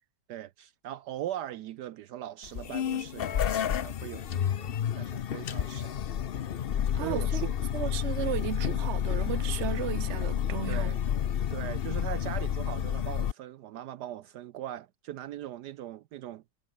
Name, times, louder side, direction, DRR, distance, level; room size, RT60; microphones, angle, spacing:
voice 1, 0.3-6.0 6.8-7.5 10.7-11.0 11.5-16.4, right 12 dB, 70° right, 1.2 m, -40 dB
sound 1, 2.4-13.3, left 9 dB, 90° left, 0.5 m, -30 dB
voice 2, 6.9-7.5 7.7-10.9, right 10 dB, 45° right, 1.0 m, -35 dB
omnidirectional pair, 1.9 m